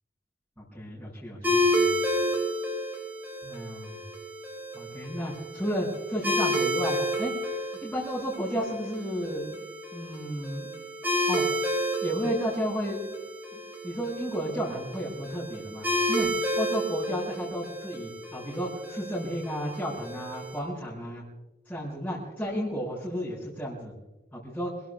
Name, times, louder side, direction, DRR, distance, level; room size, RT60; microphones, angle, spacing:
voice 1, 0.6-1.9 3.4-4.0 4.7-7.3 7.8-9.5 9.9-10.7 11.3-11.4 12.0-13.1 13.8-21.2 21.7-23.9 24.3-24.7, equal, 10° left, -7 dB, 6.1 m, -33 dB
sound 1, 1.4-20.6, equal, 10° right, 5.0 m, -31 dB
27.5 x 21.5 x 2.4 m, 1.1 s
head